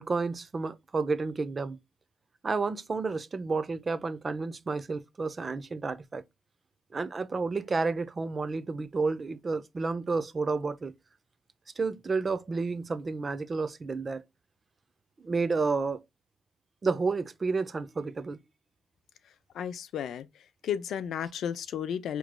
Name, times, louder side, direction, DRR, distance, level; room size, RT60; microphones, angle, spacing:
voice 1, 0.0-1.8 2.4-6.2 6.9-10.9 11.8-14.2 15.2-16.0 16.8-18.4, right 4 dB, 40° right, 0.5 m, -31 dB
voice 2, 19.5-20.3 20.6-22.2, left 9 dB, 75° left, 0.5 m, -33 dB
4.8 x 3.0 x 2.2 m
supercardioid pair, 60°, 0 cm